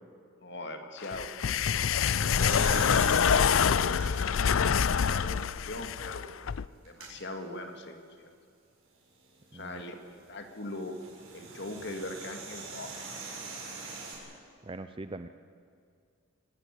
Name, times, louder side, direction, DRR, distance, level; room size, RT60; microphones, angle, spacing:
voice 1, 0.4-1.3 2.1-6.3 6.9-8.3 9.5-11.0 11.3-13.0, left 2 dB, 55° left, 5 dB, 2.1 m, -40 dB
sound 1, 1.0-6.7, left 7 dB, 70° left, 0.5 m, -26 dB
sound 2, 2.4-5.3 5.9-6.0 6.8-7.1 9.3-14.1, right 4 dB, 90° right, 7.2 m, -44 dB
voice 2, 9.5-9.8 14.6-15.3, right 2 dB, 25° right, 10 dB, 0.5 m, -41 dB
25.0 x 18.5 x 8.4 m, 2.3 s
head